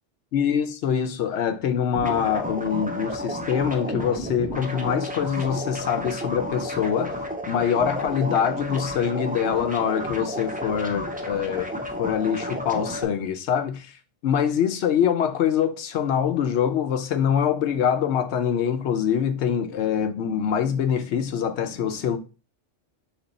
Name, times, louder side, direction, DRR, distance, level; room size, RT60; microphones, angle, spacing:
voice 1, 0.3-7.2 7.5-14.0 14.2-22.2, left 8 dB, 70° left, 0.9 m, -24 dB
sound 1, 2.0-13.0, equal, 15° right, 0.3 m, -31 dB
4.4 x 3.1 x 3.9 m
omnidirectional pair, 1.2 m